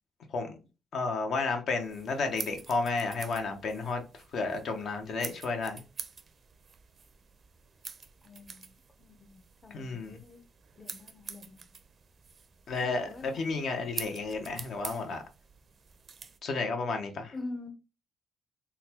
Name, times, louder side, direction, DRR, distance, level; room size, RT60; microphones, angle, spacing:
voice 1, 0.9-4.0 4.3-5.8 9.7-10.2 12.7-15.2 16.4-17.3, left 3 dB, 65° left, 0.8 m, -32 dB
sound 1, 1.8-16.4, right 5 dB, 45° right, 0.5 m, -46 dB
voice 2, 8.2-8.7 9.0-10.4 10.8-11.6 12.8-13.5 17.3-17.7, left 2 dB, 25° left, 0.6 m, -44 dB
3.9 x 2.2 x 2.8 m
cardioid pair, 90°, 0 cm